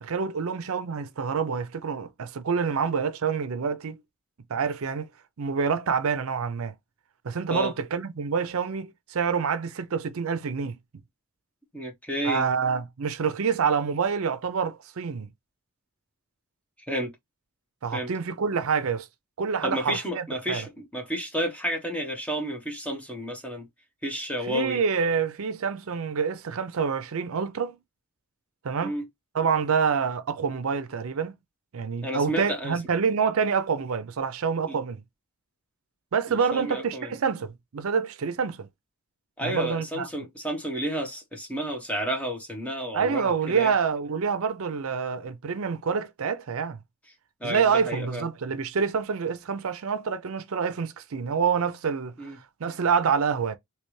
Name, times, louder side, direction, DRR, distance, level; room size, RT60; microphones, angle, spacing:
voice 1, 0.0-4.0 4.5-5.1 5.4-6.7 7.2-10.8 12.2-15.3 17.8-19.1 19.4-20.7 24.5-27.8 28.6-28.9 29.3-31.3 31.7-35.0 36.1-38.7 39.4-40.1 42.9-46.8 47.4-52.2 52.6-53.6, right 6 dB, 70° right, 0.5 m, -27 dB
voice 2, 11.7-12.4 16.9-17.1 17.9-18.1 19.6-23.7 24.0-24.8 28.8-29.1 32.0-32.8 34.7-34.8 36.3-37.2 39.4-43.7 47.4-48.2 52.2-52.4, equal, 5° left, 1.0 m, -31 dB
3.3 x 3.0 x 3.1 m
head